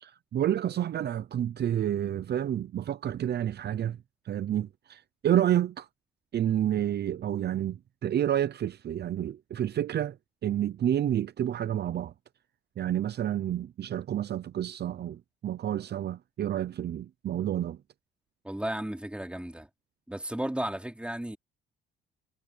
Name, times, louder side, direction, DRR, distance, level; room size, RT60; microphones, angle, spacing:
voice 1, 0.0-4.0 4.3-5.9 6.3-10.2 10.4-12.1 12.8-17.8, right 11 dB, 55° right, 0.7 m, -29 dB
voice 2, 18.4-19.7 20.1-21.4, right 1 dB, 5° right, 3.4 m, -34 dB
cardioid pair, 90°, 20 cm